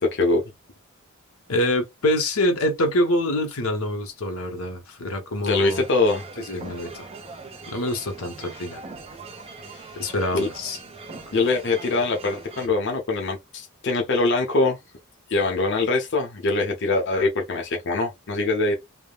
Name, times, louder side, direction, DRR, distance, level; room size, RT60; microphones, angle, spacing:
voice 1, 0.0-0.4 5.4-6.2 9.7-9.8 10.3-10.5 11.3-14.8 15.3-18.7, left 3 dB, 55° left, 0.6 m, -23 dB
voice 2, 1.5-5.8 6.4-7.1 7.7-8.8 10.0-10.8, left 1 dB, 85° left, 0.9 m, -25 dB
sound 1, 5.5-12.7, right 4 dB, 25° right, 0.6 m, -41 dB
3.4 x 2.1 x 2.3 m
head